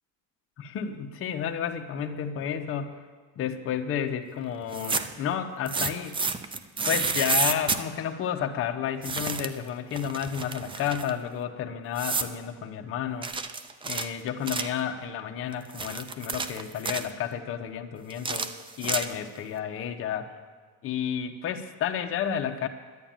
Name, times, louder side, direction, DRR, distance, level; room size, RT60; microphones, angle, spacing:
voice 1, 0.7-3.0 3.4-6.2 6.9-13.3 13.8-18.5 18.8-20.3 20.8-22.7, left 8 dB, 40° left, 3 dB, 1.0 m, -31 dB
sound 1, 4.6-5.2 5.7-7.8 9.0-9.6 9.9-11.1 12.0-12.3 13.2-14.8 15.5-17.1 18.1-19.4, right 4 dB, 15° right, 0.4 m, -30 dB
11.0 x 10.5 x 8.9 m, 1.5 s
cardioid pair, 145°, 34 cm